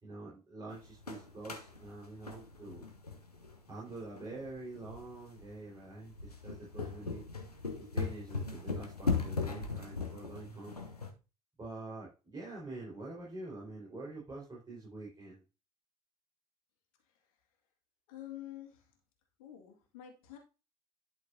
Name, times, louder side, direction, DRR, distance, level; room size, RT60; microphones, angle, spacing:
voice 1, 0.0-2.8 3.7-7.2 7.8-10.8 11.6-15.4, right 2 dB, 20° right, -5 dB, 4.6 m, -46 dB
sound 1, 0.7-11.1, left 4 dB, 90° left, 0.9 m, -39 dB
voice 2, 18.1-18.8 19.4-20.4, left 12 dB, 65° left, 2 dB, 2.1 m, -48 dB
11.5 x 5.9 x 2.8 m, 0.31 s
figure-of-eight pair, 65°, 19 cm